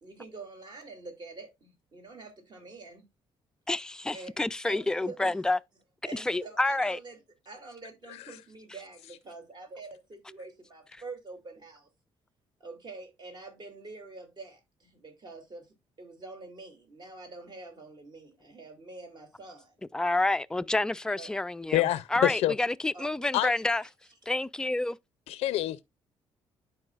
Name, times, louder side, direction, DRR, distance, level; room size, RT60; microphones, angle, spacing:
voice 1, 0.0-3.0 4.1-4.4 4.6-5.4 6.0-7.2 7.4-11.9 12.6-19.7 21.2-21.4 22.9-23.1, right 3 dB, 45° right, 2.7 m, -46 dB
voice 2, 3.7-5.6 6.1-7.0 19.9-21.8 22.1-23.8 24.3-25.0, left 2 dB, 5° left, 0.3 m, -28 dB
voice 3, 21.7-22.5 23.3-23.5 25.3-25.8, left 14 dB, 85° left, 0.4 m, -26 dB
11.0 x 4.6 x 2.4 m
cardioid pair, 95°, 10 cm